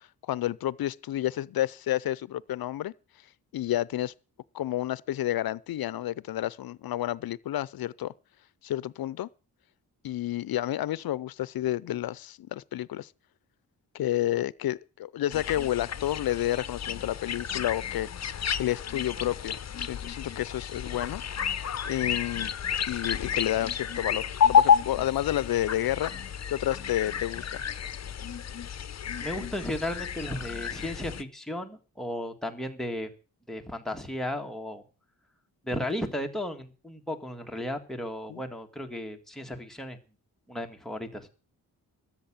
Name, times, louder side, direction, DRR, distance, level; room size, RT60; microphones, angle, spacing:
voice 1, 0.3-2.9 3.5-4.1 4.5-8.1 8.6-9.3 10.0-13.1 13.9-18.1 18.6-21.2 21.6-22.5 22.9-26.1 26.5-27.5 38.3-38.4, left 13 dB, 80° left, 0.6 m, -30 dB
sound 1, 15.3-31.2, left 8 dB, 50° left, 0.8 m, -30 dB
voice 2, 29.2-33.1 33.5-34.8 35.6-40.0 40.5-41.3, left 1 dB, ahead, 1.9 m, -34 dB
13.5 x 7.4 x 8.7 m
wide cardioid pair, 115°, 35 cm